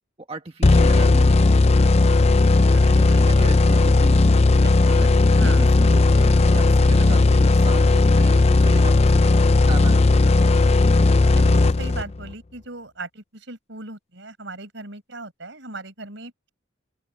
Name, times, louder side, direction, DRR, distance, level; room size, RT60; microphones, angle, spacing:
voice 1, 0.3-1.8 2.4-4.4 4.9-9.3 9.7-10.3, right 1 dB, 30° right, 1.6 m, -36 dB
sound 1, 0.6-12.3, left 3 dB, 35° left, 0.5 m, -16 dB
voice 2, 2.7-3.2 4.6-5.0 5.3-5.7 11.2-16.5, right 2 dB, 70° right, 5.1 m, -38 dB
open air
head